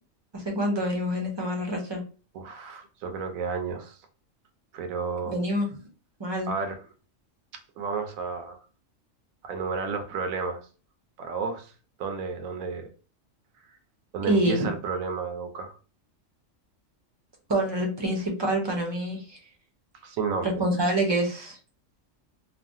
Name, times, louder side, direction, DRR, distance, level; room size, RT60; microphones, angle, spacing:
voice 1, 0.3-2.0 5.3-5.7 6.2-6.5 14.3-14.7 17.5-19.4 20.4-21.6, right 1 dB, 30° right, 1 dB, 0.5 m, -26 dB
voice 2, 2.3-4.0 4.7-5.4 6.5-6.9 7.8-8.6 9.4-10.6 11.2-11.7 12.0-12.9 14.1-15.7 20.0-20.6, right 5 dB, 85° right, 6 dB, 1.0 m, -32 dB
3.2 x 2.0 x 2.6 m, 0.37 s
omnidirectional pair, 1.4 m